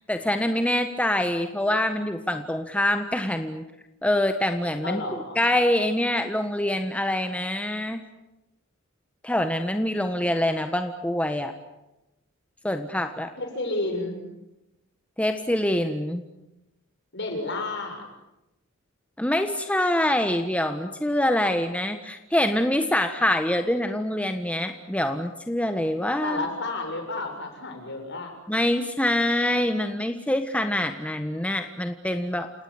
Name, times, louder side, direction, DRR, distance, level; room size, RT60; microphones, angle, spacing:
voice 1, 0.0-3.6 4.0-5.0 5.3-8.0 9.2-11.5 12.6-13.3 15.2-16.2 19.2-26.4 28.5-32.5, left 1 dB, 5° left, 7 dB, 1.5 m, -25 dB
voice 2, 4.8-5.4 13.4-14.2 17.1-18.1 26.2-28.3, left 2 dB, 60° left, 4 dB, 7.0 m, -31 dB
29.5 x 18.0 x 9.9 m, 0.93 s
head